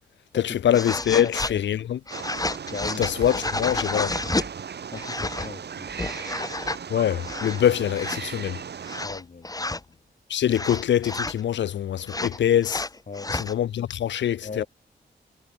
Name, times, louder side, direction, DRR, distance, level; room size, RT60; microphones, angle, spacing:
voice 1, 0.3-2.0 3.0-4.1 6.9-8.6 10.3-12.8 13.3-14.6, left 10 dB, 85° left, 1.1 m, -24 dB
sound 1, 0.7-1.6 2.1-4.5 4.9-5.5 5.9-6.8 7.2-7.6 7.9-8.2 8.9-9.8 10.5-11.4 12.1-13.5, left 2 dB, 20° left, 4.6 m, -30 dB
voice 2, 1.1-1.9 2.7-3.1 4.9-6.1 9.0-10.0 13.1-13.3 14.4-14.7, left 4 dB, 45° left, 5.4 m, -38 dB
Wild animals, 2.1-9.1, right 7 dB, 65° right, 6.2 m, -37 dB
cardioid pair, 80°, 18 cm